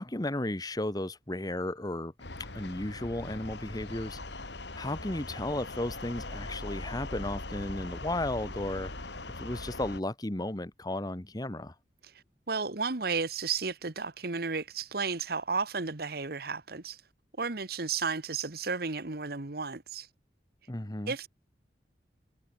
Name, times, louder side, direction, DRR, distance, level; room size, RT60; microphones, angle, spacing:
voice 1, 0.0-2.1 2.5-4.5 4.8-8.9 9.4-11.7 20.7-21.1, left 1 dB, 20° left, 1.2 m, -34 dB
sound 1, 2.2-10.0, left 2 dB, 85° left, 4.3 m, -40 dB
voice 2, 12.5-17.0 17.4-20.1 21.1-21.3, right 4 dB, 60° right, 1.5 m, -33 dB
head